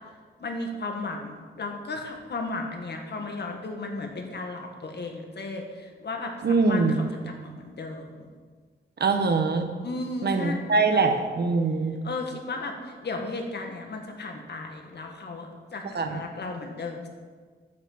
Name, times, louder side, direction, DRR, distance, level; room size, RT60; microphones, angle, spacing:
voice 1, 0.4-8.3 9.8-11.2 12.0-17.1, left 3 dB, 60° left, 3 dB, 1.6 m, -35 dB
voice 2, 6.4-7.1 9.0-9.7 10.2-12.0 15.9-16.2, right 4 dB, 55° right, 6 dB, 1.2 m, -23 dB
9.2 x 6.1 x 7.2 m, 1.5 s
wide cardioid pair, 95°, 20 cm